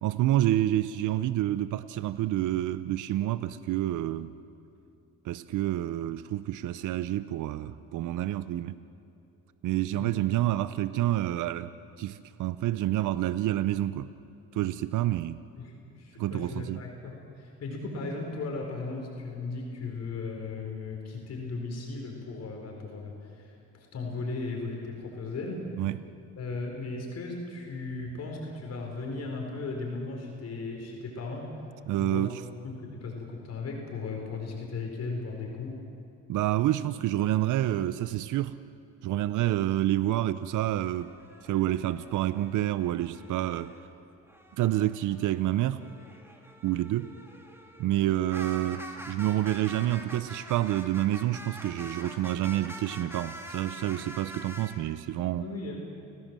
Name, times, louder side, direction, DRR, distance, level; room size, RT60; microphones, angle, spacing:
voice 1, 0.0-4.3 5.2-8.8 9.6-11.7 12.0-14.1 14.5-15.4 16.2-16.8 25.8-26.0 31.9-32.4 36.3-38.5 39.0-41.2 41.4-43.7 44.6-45.8 46.6-47.1 47.8-55.5, right 14 dB, 80° right, 14 dB, 0.7 m, -28 dB
voice 2, 15.6-25.6 26.4-31.5 32.0-32.3 32.6-35.8 55.4-55.8, left 3 dB, 55° left, 0 dB, 4.7 m, -36 dB
sound 1, 40.9-43.8 44.2-54.8, right 1 dB, 10° right, 3.0 m, -45 dB
29.5 x 17.5 x 7.6 m, 2.7 s
cardioid pair, 90°, 30 cm